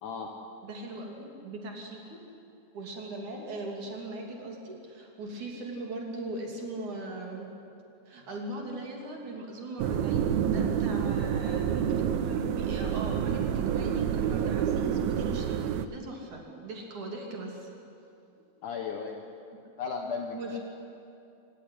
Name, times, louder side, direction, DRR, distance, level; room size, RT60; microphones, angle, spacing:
voice 1, 0.0-0.4 18.6-19.2 19.8-20.6, left 5 dB, 65° left, 2 dB, 2.2 m, -35 dB
voice 2, 0.6-2.2 2.7-7.5 8.1-17.7 19.5-19.6 20.3-20.6, right 2 dB, 50° right, 0 dB, 4.0 m, -39 dB
sound 1, 9.8-15.9, right 9 dB, 75° right, 2.4 m, -28 dB
26.0 x 16.0 x 9.9 m, 2.7 s
omnidirectional pair, 5.0 m